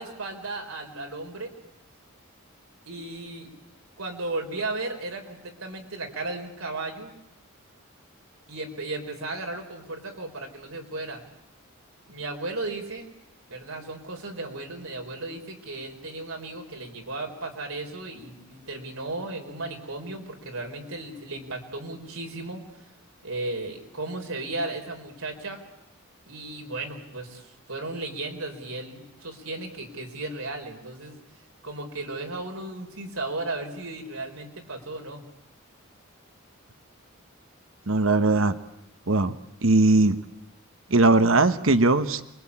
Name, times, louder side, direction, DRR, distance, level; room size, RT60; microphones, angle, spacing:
voice 1, 0.0-1.5 2.9-3.5 4.0-7.1 8.5-11.2 12.1-13.1 13.5-22.6 23.2-25.6 26.2-31.2 31.6-35.2, right 2 dB, 85° right, 2 dB, 4.7 m, -35 dB
voice 2, 37.9-38.6 39.1-39.3 39.6-40.1 40.9-42.2, right 2 dB, 70° right, 11 dB, 1.1 m, -19 dB
28.0 x 22.0 x 8.7 m, 0.88 s
head